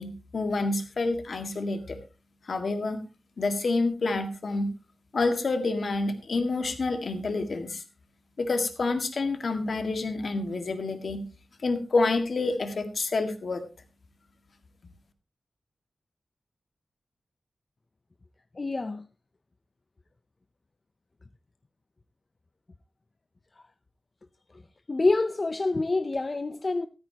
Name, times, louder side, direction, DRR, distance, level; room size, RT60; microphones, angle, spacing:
voice 1, 0.0-2.0 2.5-3.0 3.4-4.7 5.1-7.8 8.4-11.3 11.6-13.6, left 3 dB, 50° left, 1.8 m, -28 dB
voice 2, 18.6-19.1 24.9-26.9, left 3 dB, 30° left, 0.5 m, -26 dB
13.5 x 13.5 x 2.9 m
wide cardioid pair, 175°, 0 cm